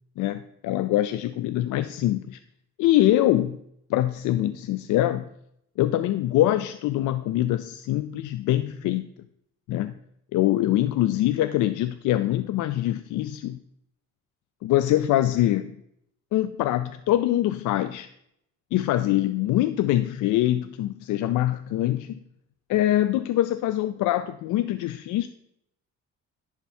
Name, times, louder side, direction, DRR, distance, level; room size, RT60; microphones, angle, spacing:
voice 1, 0.2-2.4 2.8-3.6 3.9-5.2 5.8-9.0 9.7-9.9 10.3-13.6 14.6-15.7 16.3-18.1 18.7-22.2 22.7-25.3, left 14 dB, 80° left, 11 dB, 0.5 m, -24 dB
10.5 x 3.6 x 5.5 m, 0.74 s
cardioid pair, 90°, 30 cm